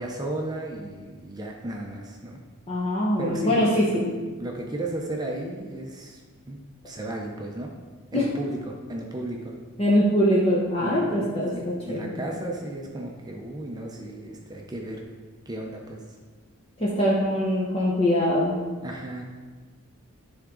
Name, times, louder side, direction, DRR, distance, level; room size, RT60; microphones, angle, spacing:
voice 1, 0.0-2.4 3.2-4.1 4.4-6.2 6.5-6.6 6.8-7.7 8.1-9.6 10.8-15.0 15.5-16.0 18.8-19.2, right 1 dB, 20° right, 0 dB, 0.6 m, -34 dB
voice 2, 2.7-4.1 8.1-8.2 9.8-12.1 16.8-18.6, equal, 25° left, -6 dB, 0.8 m, -23 dB
9.8 x 3.6 x 3.8 m, 1.4 s
head